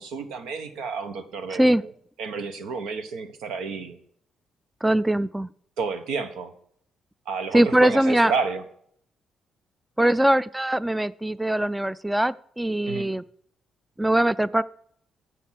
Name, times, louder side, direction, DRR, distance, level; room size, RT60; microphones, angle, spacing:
voice 1, 0.0-1.9 2.2-4.0 5.8-6.5 7.3-8.6 12.9-13.1, right 5 dB, 85° right, 9 dB, 1.3 m, -30 dB
voice 2, 1.5-1.8 4.8-5.5 7.5-8.3 10.0-13.2 14.0-14.6, right 1 dB, 10° right, 19 dB, 0.3 m, -21 dB
11.0 x 7.5 x 5.9 m, 0.64 s
cardioid pair, 90°, 0 cm